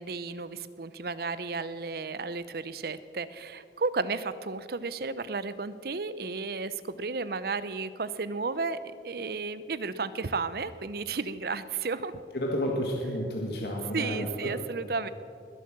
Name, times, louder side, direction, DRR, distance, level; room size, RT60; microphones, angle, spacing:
voice 1, 0.0-8.8 9.0-12.2 13.9-15.1, right 4 dB, 55° right, 15 dB, 0.6 m, -33 dB
voice 2, 12.3-14.3, equal, 60° left, 0 dB, 1.7 m, -31 dB
21.0 x 8.4 x 7.4 m, 2.6 s
head